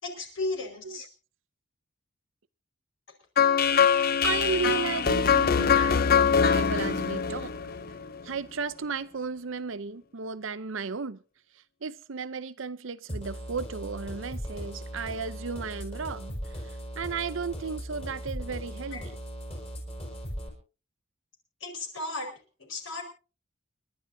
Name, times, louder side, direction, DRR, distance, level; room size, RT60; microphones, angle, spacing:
voice 1, 0.0-1.1 18.9-19.0 21.6-22.3 22.6-23.0, left 2 dB, 70° left, 4.9 m, -34 dB
sound 1, 3.4-8.3, left 6 dB, 45° left, 0.6 m, -23 dB
voice 2, 4.2-7.5 8.2-11.2 11.8-16.4 17.0-19.1, right 5 dB, 70° right, 0.7 m, -34 dB
sound 2, 13.1-20.5, equal, 30° left, 5.5 m, -38 dB
30.0 x 11.5 x 2.7 m
head